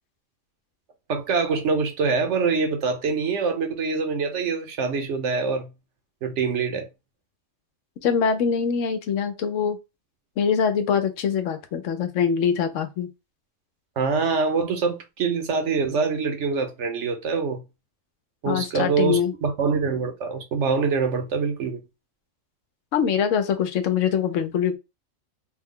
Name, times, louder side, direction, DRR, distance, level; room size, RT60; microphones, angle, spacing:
voice 1, 1.1-5.7 6.2-6.9 14.0-17.6 18.4-21.8, right 4 dB, 65° right, 1.1 m, -24 dB
voice 2, 8.0-9.8 10.4-13.1 18.5-19.3 22.9-24.8, left 7 dB, 70° left, 1.0 m, -23 dB
3.4 x 2.2 x 3.6 m
omnidirectional pair, 1.4 m